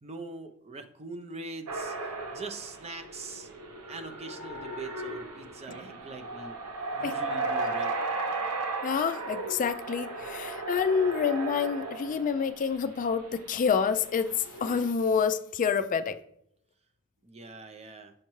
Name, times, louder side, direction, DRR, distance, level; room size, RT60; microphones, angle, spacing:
voice 1, 0.0-2.0 2.3-3.5 3.9-6.6 6.9-8.0 17.2-18.1, right 3 dB, 30° right, 7 dB, 0.5 m, -42 dB
sound 1, 1.7-12.6 13.3-13.6 14.0-14.9, right 3 dB, 85° right, 0.8 m, -35 dB
voice 2, 8.8-16.2, left 6 dB, 35° left, 10 dB, 0.3 m, -28 dB
6.4 x 5.7 x 3.0 m, 0.71 s
head